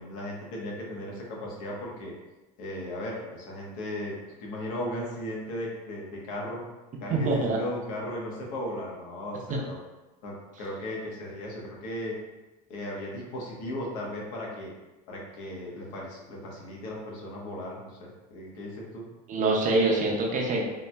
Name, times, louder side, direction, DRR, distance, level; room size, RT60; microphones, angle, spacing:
voice 1, 0.0-2.1 2.6-6.6 7.0-9.8 10.2-12.2 12.7-14.7 15.1-19.0, left 1 dB, 65° left, -2 dB, 1.1 m, -36 dB
voice 2, 7.1-7.6 9.5-9.6 19.3-20.6, right 2 dB, 35° right, -1 dB, 0.7 m, -25 dB
3.8 x 3.0 x 2.2 m, 1.1 s
supercardioid pair, 110°, 21 cm